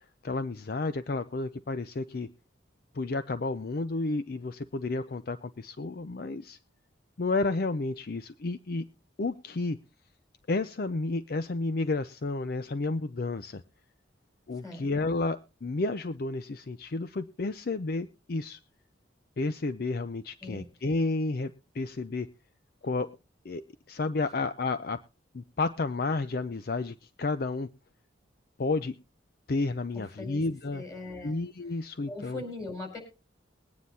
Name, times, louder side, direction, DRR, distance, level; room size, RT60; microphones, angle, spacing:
voice 1, 0.2-2.3 2.9-6.6 7.2-8.9 9.2-9.8 10.5-13.6 14.5-18.6 19.4-22.3 22.8-23.1 23.4-23.6 23.9-25.0 25.3-27.7 28.6-29.0 29.5-30.8 31.2-32.4, left 3 dB, 50° left, 12 dB, 0.5 m, -31 dB
voice 2, 14.5-14.8 20.4-20.7 29.9-30.4 30.7-31.4 31.7-33.0, left 2 dB, 20° left, 3 dB, 4.9 m, -41 dB
21.5 x 9.5 x 2.7 m, 0.32 s
head